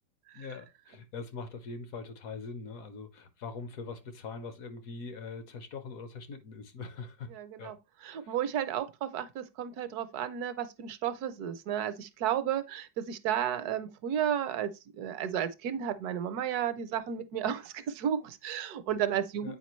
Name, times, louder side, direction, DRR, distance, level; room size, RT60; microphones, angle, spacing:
voice 1, 0.3-7.3 7.6-7.8 8.0-8.4 19.4-19.6, left 4 dB, 60° left, 1.1 m, -42 dB
voice 2, 7.3-7.8 8.0-19.6, right 9 dB, 70° right, 1.1 m, -33 dB
8.2 x 4.6 x 3.0 m
omnidirectional pair, 1.8 m